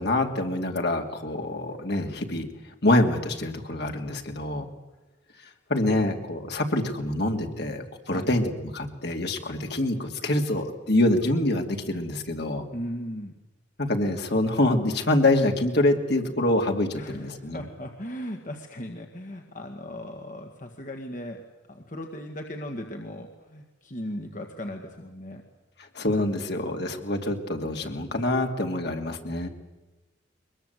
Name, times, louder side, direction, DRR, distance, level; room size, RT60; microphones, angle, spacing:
voice 1, 0.0-2.5 2.8-4.7 5.7-12.6 13.8-17.6 25.9-29.5, left 1 dB, 60° left, 4 dB, 2.5 m, -25 dB
voice 2, 12.7-13.3 17.0-21.4 21.7-25.4, equal, 40° left, 3 dB, 1.8 m, -37 dB
22.5 x 22.0 x 8.1 m, 1.1 s
head